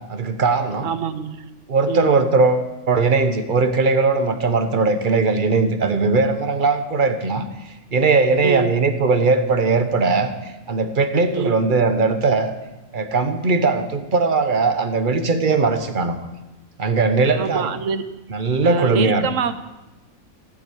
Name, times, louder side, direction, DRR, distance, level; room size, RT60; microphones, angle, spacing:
voice 1, 0.1-0.9 1.7-7.4 7.9-10.3 10.7-12.5 12.9-16.1 16.8-17.7 18.3-19.2, right 4 dB, 40° right, 9 dB, 1.2 m, -19 dB
voice 2, 0.8-1.5 1.9-2.2 8.4-8.7 11.3-11.6 17.4-18.0 18.6-19.5, right 6 dB, 65° right, 12 dB, 1.3 m, -25 dB
14.5 x 9.0 x 8.2 m, 1.1 s
omnidirectional pair, 1.5 m